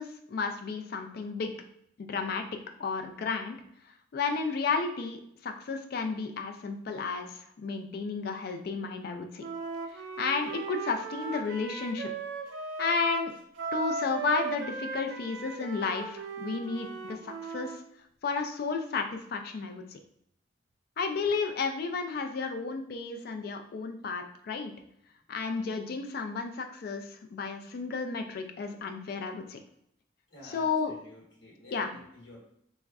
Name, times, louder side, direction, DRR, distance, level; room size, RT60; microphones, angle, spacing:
voice 1, 0.0-1.5 2.0-2.4 2.8-3.6 4.1-9.4 10.2-12.1 12.8-13.3 13.7-17.8 18.2-20.0 21.0-24.7 25.3-29.6 30.4-30.9 31.7-31.9, left 4 dB, 50° left, 6 dB, 0.3 m, -32 dB
Wind instrument woodwind instrument, 9.4-17.8, right 4 dB, 75° right, 0.4 m, -37 dB
voice 2, 30.3-32.4, left 1 dB, 80° left, -3 dB, 1.0 m, -51 dB
3.5 x 2.1 x 2.3 m, 0.71 s
head